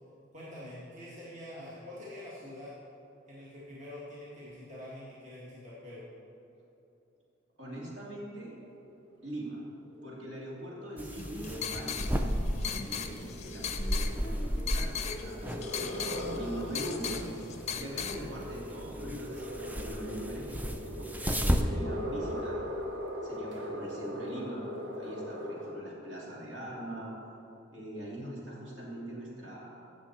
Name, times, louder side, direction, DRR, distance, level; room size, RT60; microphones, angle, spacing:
voice 1, 0.3-2.7 3.3-6.0, left 1 dB, 40° right, -8 dB, 1.9 m, -45 dB
voice 2, 7.6-8.6 9.2-9.6 10.0-12.0 12.7-22.6 23.2-24.6 25.0-27.1 27.7-29.8, right 1 dB, 65° right, -5 dB, 2.9 m, -42 dB
sound 1, 8.4-25.8, equal, 85° right, 1.6 m, -41 dB
sound 2, 11.0-21.6, equal, 10° right, 0.5 m, -34 dB
sound 3, 11.1-18.2, left 6 dB, 35° left, 0.6 m, -38 dB
16.0 x 6.8 x 4.4 m, 2.9 s
head